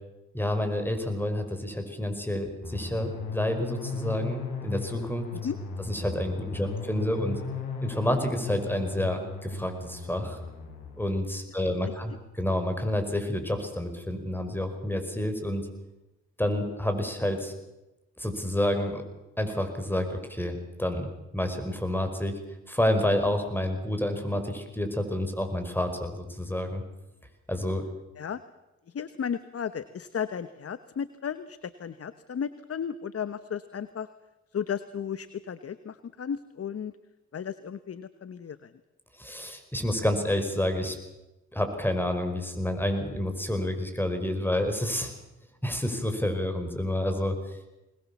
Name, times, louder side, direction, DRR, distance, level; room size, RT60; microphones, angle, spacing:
voice 1, 0.3-5.3 5.9-7.4 7.8-10.4 11.0-15.7 16.4-17.5 18.2-19.0 19.4-22.3 22.7-26.8 27.5-27.8 39.2-41.0 41.5-45.1 45.6-47.4, left 1 dB, 5° left, 7 dB, 5.5 m, -29 dB
sound 1, 2.6-11.2, left 4 dB, 75° left, 5.8 m, -36 dB
voice 2, 11.5-12.2 28.2-28.4 28.9-34.1 34.5-36.9 37.3-38.7, left 7 dB, 50° left, 14 dB, 1.1 m, -35 dB
22.0 x 20.0 x 7.2 m, 0.99 s
supercardioid pair, 50°, 31 cm